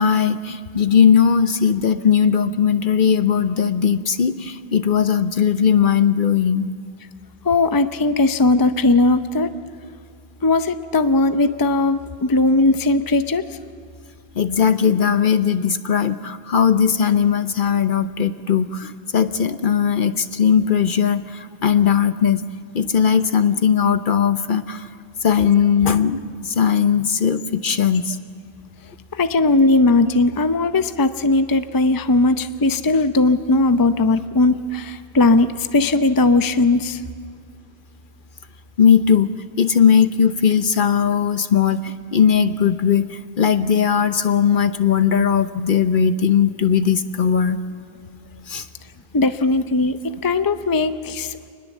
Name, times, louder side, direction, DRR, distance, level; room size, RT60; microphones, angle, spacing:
voice 1, 0.0-6.7 14.4-22.4 22.7-24.8 25.2-28.2 38.8-43.1 43.4-47.6 48.5-48.6, left 7 dB, 55° left, 11 dB, 0.9 m, -18 dB
voice 2, 7.5-9.5 10.4-13.4 29.2-37.0 49.1-51.3, left 2 dB, 25° left, 10 dB, 0.7 m, -18 dB
26.0 x 20.5 x 7.3 m, 2.2 s
omnidirectional pair, 1.1 m